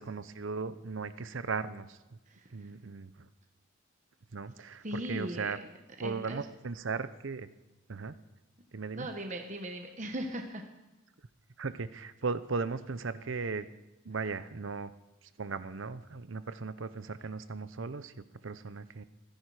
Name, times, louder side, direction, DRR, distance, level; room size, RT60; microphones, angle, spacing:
voice 1, 0.0-2.2 2.5-3.3 4.3-5.6 6.0-7.5 7.9-8.2 8.7-9.1 11.6-13.7 14.0-14.9 15.4-18.1 18.4-19.0, right 4 dB, 65° right, 14 dB, 0.7 m, -37 dB
voice 2, 2.3-2.7 4.8-5.5 6.0-6.5 8.9-10.6, right 1 dB, 35° right, 4 dB, 1.1 m, -39 dB
24.5 x 10.5 x 4.9 m, 1.0 s
head